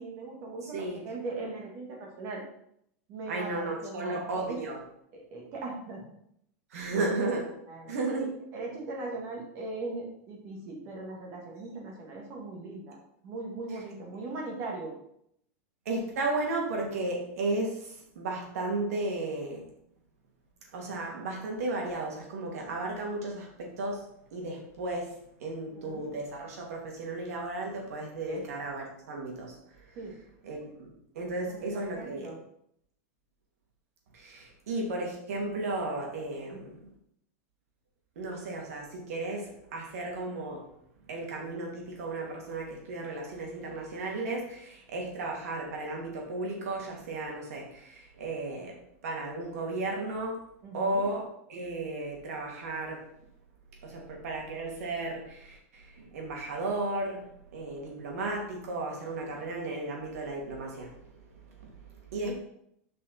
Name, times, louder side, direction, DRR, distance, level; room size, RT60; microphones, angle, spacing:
voice 1, 0.0-2.4 3.1-4.2 4.5-4.6 5.3-6.0 7.7-8.0 8.5-13.0 13.2-14.9 25.7-26.1 28.3-28.4 30.0-30.2 31.5-32.4 36.5-36.7 50.6-51.0 62.3-62.4, right 3 dB, 35° right, 0 dB, 2.0 m, -39 dB
voice 2, 0.6-1.0 3.3-4.8 6.7-7.5 7.9-8.3 13.7-13.8 15.8-19.7 20.7-30.0 30.4-32.3 34.1-36.9 38.2-40.7 41.1-50.4 50.7-51.2 51.5-53.1 53.8-57.3 57.5-62.3, right 2 dB, 80° right, -1 dB, 2.7 m, -34 dB
7.3 x 5.5 x 4.4 m, 0.72 s
supercardioid pair, 170°, 8 cm